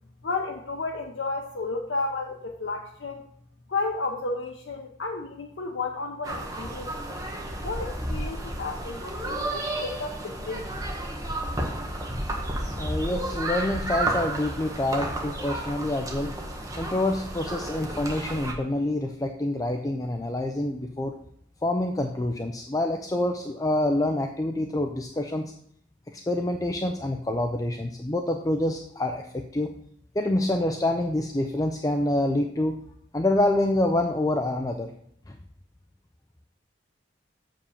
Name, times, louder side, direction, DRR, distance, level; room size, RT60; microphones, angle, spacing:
voice 1, 0.2-3.3 3.7-7.1 7.6-10.8, left 3 dB, 75° left, 1 dB, 0.8 m, -32 dB
sound 1, 6.2-18.5, right 1 dB, 20° right, 1.1 m, -32 dB
voice 2, 12.7-16.3 16.8-21.1 21.6-25.5 26.1-29.7 30.2-32.8 33.1-34.9, left 1 dB, 20° left, 3 dB, 0.5 m, -27 dB
6.5 x 5.1 x 7.0 m, 0.67 s
head